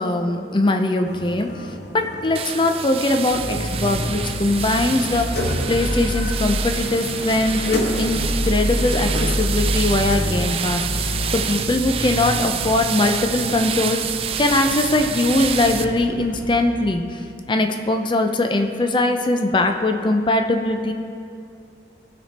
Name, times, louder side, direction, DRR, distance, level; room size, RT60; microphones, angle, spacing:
voice 1, 0.0-1.5 1.9-17.2 17.5-20.9, left 2 dB, 25° left, 5 dB, 0.5 m, -21 dB
sound 1, 1.1-10.7, left 1 dB, 65° left, 1.5 m, -33 dB
sound 2, 2.3-15.8, right 8 dB, 30° right, 0.3 m, -28 dB
sound 3, 3.3-16.6, equal, 40° left, 1.5 m, -27 dB
15.5 x 5.2 x 4.2 m, 2.5 s
head